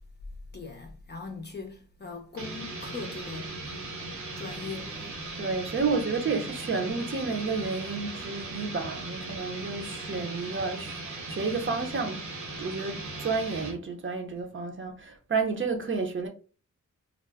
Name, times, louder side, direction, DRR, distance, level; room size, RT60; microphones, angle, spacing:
voice 1, 0.5-3.5 4.4-5.0, left 4 dB, 35° left, 0.5 m, -40 dB
sound 1, 2.4-13.8, right 2 dB, 70° right, 0.8 m, -38 dB
voice 2, 5.4-11.0 11.3-12.2 12.6-16.3, right 4 dB, 40° right, 0.6 m, -31 dB
2.3 x 2.1 x 3.3 m
wide cardioid pair, 90°, 31 cm